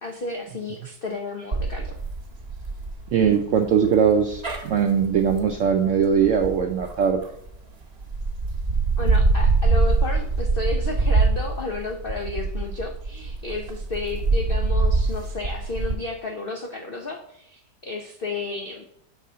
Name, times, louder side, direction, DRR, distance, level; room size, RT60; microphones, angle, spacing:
voice 1, 0.0-2.0 9.0-18.8, left 3 dB, 80° left, 2 dB, 0.5 m, -32 dB
sound 1, 1.5-7.5 8.0-15.9, right 3 dB, 40° right, 1.1 m, -24 dB
voice 2, 3.1-7.2, right 7 dB, 75° right, 4 dB, 0.7 m, -20 dB
6.2 x 3.7 x 5.5 m, 0.72 s
omnidirectional pair, 1.9 m